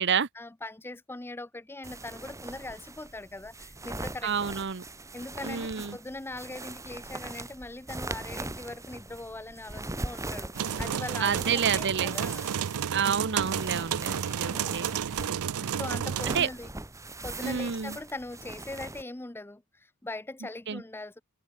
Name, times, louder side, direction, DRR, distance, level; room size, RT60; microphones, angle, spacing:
voice 1, 0.3-4.3 5.1-12.5 14.4-14.8 15.7-16.7 17.2-21.2, left 2 dB, 10° left, 0.5 m, -41 dB
sound 1, 1.8-19.0, right 2 dB, 15° right, 1.8 m, -41 dB
voice 2, 4.2-4.8 5.4-6.0 11.2-12.2 12.9-14.9 15.5-15.7 16.3-16.5 17.4-18.0 20.7-20.8, right 7 dB, 50° right, 0.9 m, -29 dB
sound 2, 10.5-16.4, right 8 dB, 75° right, 0.5 m, -31 dB
open air
head